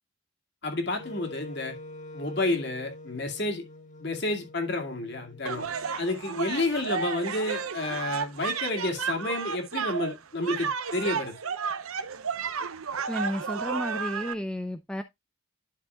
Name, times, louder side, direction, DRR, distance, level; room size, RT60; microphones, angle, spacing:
voice 1, 0.6-1.8 2.1-3.6 4.0-11.4, left 2 dB, 55° left, 2.3 m, -30 dB
Wind instrument woodwind instrument, 1.0-7.0, left 2 dB, 35° left, 1.9 m, -46 dB
sound 1, 5.5-14.3, right 6 dB, 85° right, 0.8 m, -32 dB
voice 2, 13.1-15.0, equal, 5° left, 0.5 m, -32 dB
11.5 x 6.1 x 2.3 m
head